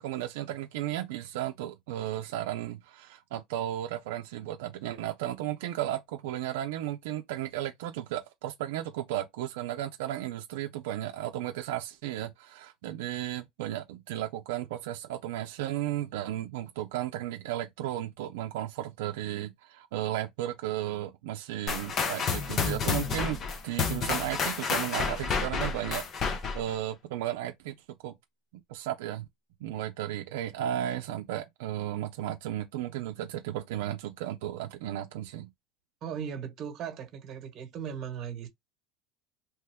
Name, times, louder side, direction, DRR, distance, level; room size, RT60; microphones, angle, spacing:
voice 1, 0.0-23.4 23.6-27.7 28.0-28.1 28.7-29.3 29.6-35.5, right 13 dB, 85° right, 0.4 m, -34 dB
sound 1, 21.7-26.7, left 5 dB, 30° left, 0.6 m, -30 dB
voice 2, 36.0-38.5, right 8 dB, 40° right, 1.2 m, -37 dB
3.0 x 2.2 x 3.4 m
supercardioid pair, 140°, 0 cm